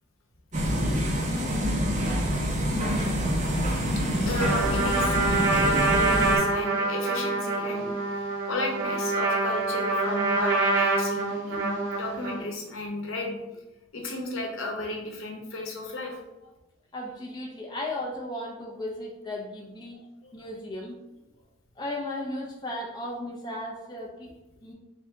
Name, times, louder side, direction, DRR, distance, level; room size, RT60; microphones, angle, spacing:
sound 1, 0.5-6.4, equal, 35° right, 0.6 m, -26 dB
voice 1, 4.2-5.2 5.5-7.9 8.5-13.6 13.9-16.2 20.2-20.3, left 2 dB, 85° left, 0 dB, 0.8 m, -34 dB
Trumpet, 4.4-12.5, right 3 dB, 65° right, 0.8 m, -26 dB
voice 2, 16.9-20.0 20.3-21.0 21.8-24.3 24.6-24.7, left 1 dB, 20° left, -2 dB, 0.4 m, -35 dB
3.6 x 2.7 x 3.3 m, 0.99 s
head